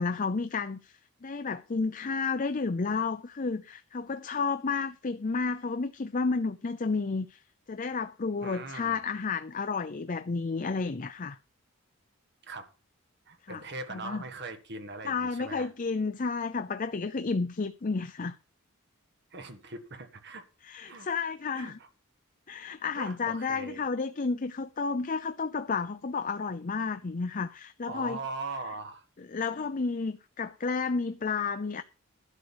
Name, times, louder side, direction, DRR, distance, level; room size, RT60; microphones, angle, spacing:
voice 1, 0.0-7.4 7.7-11.4 13.4-13.6 13.9-14.2 15.0-18.4 20.6-21.8 22.5-28.2 29.2-31.8, left 4 dB, 40° left, 0.5 m, -31 dB
voice 2, 8.4-9.0 12.4-12.7 13.3-15.7 19.3-20.4 20.9-21.1 21.5-21.9 23.0-23.8 27.8-29.0, right 3 dB, 50° right, 1.7 m, -40 dB
11.5 x 6.3 x 6.9 m
head